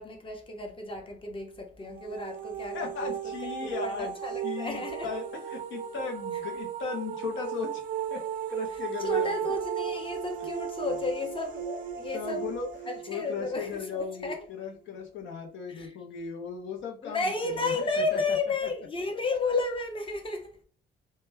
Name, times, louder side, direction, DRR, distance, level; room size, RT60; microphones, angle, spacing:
voice 1, 0.0-5.1 9.0-12.5 13.1-14.5 15.7-16.0 17.0-20.6, left 3 dB, 25° left, 0.7 m, -33 dB
sound 1, 1.9-14.7, right 9 dB, 45° right, 0.4 m, -35 dB
voice 2, 2.7-4.1 4.4-7.8 8.1-8.2 8.5-9.4 12.1-17.3 17.6-18.2, left 6 dB, 70° left, 0.7 m, -37 dB
2.1 x 2.1 x 3.3 m
cardioid pair, 90°, 20 cm